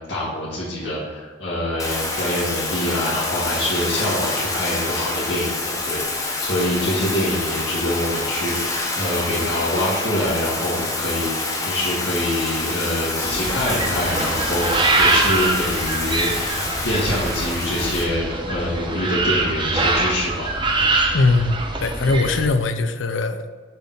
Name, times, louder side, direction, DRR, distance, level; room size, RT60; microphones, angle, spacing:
voice 1, 0.1-20.5, left 1 dB, 65° left, -9 dB, 2.0 m, -25 dB
Bathtub (filling or washing), 1.8-18.0, left 2 dB, 20° left, 0.9 m, -27 dB
sound 1, 13.2-22.5, right 2 dB, 25° right, 0.8 m, -23 dB
voice 2, 21.1-23.5, left 3 dB, 90° left, 10 dB, 0.6 m, -20 dB
6.7 x 4.2 x 5.5 m, 1.5 s
head